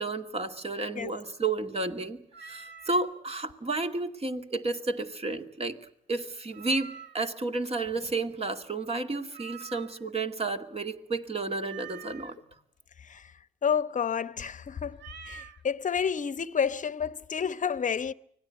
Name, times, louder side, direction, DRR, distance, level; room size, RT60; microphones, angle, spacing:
voice 1, 0.0-5.8 6.1-12.3, right 3 dB, 30° right, 2.3 m, -32 dB
Meow, 2.3-3.1 6.5-7.3 9.3-10.1 11.6-12.3 14.9-15.6, right 7 dB, 65° right, 2.0 m, -46 dB
voice 2, 13.0-18.1, left 7 dB, 40° left, 1.0 m, -30 dB
25.0 x 17.5 x 9.3 m
cardioid pair, 90°, 20 cm